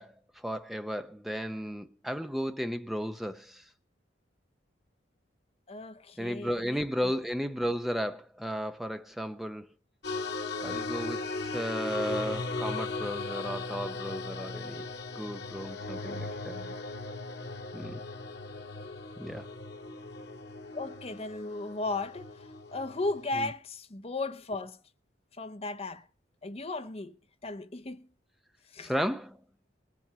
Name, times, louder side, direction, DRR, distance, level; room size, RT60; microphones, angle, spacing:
voice 1, 0.0-3.6 6.2-9.7 10.6-14.9 15.1-16.5 17.7-18.0 19.2-19.5 28.8-29.4, equal, ahead, 0.7 m, -34 dB
voice 2, 5.7-7.1 16.0-16.7 20.7-24.8 25.3-26.1 26.4-27.1 27.4-28.1 28.7-28.9, left 2 dB, 35° left, 0.8 m, -36 dB
sound 1, 10.0-23.2, left 3 dB, 65° left, 1.7 m, -38 dB
20.0 x 7.5 x 6.8 m
head